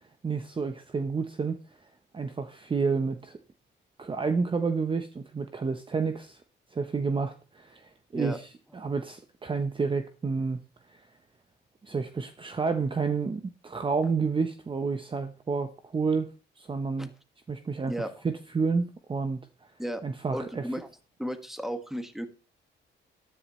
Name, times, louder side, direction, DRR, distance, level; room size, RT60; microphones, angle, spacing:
voice 1, 0.2-1.6 2.1-3.4 4.0-6.4 6.7-8.4 8.7-10.6 10.9-11.0 11.8-16.3 16.6-17.1 17.5-17.9 18.2-19.7 20.0-20.6, right 4 dB, 25° right, 0.8 m, -30 dB
voice 2, 20.3-20.9 21.2-22.3, equal, ahead, 1.5 m, -34 dB
13.0 x 10.0 x 3.1 m
cardioid pair, 90°, 20 cm